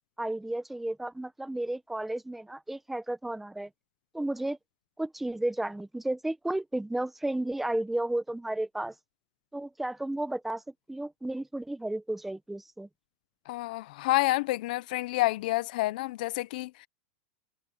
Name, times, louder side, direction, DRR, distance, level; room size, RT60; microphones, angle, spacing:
voice 1, 0.2-3.7 4.1-4.6 5.0-8.9 9.5-10.6 10.9-12.9, right 1 dB, 5° right, 1.0 m, -33 dB
voice 2, 13.5-16.9, left 18 dB, 60° left, 0.6 m, -29 dB
supercardioid pair, 150°, 5 cm